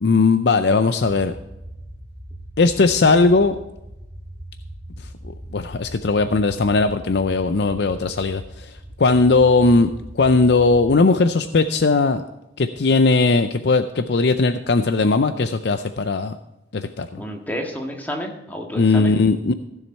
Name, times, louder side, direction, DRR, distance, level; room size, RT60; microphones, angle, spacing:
voice 1, 0.0-1.3 2.6-3.6 5.5-8.7 9.0-12.2 12.6-16.4 16.7-17.2 18.8-19.5, left 3 dB, 70° left, 10 dB, 0.5 m, -18 dB
sound 1, 1.0-11.0, right 1 dB, 20° right, 3.1 m, -39 dB
voice 2, 17.2-19.2, equal, 10° left, 2 dB, 1.7 m, -30 dB
15.5 x 7.2 x 4.3 m, 0.94 s
head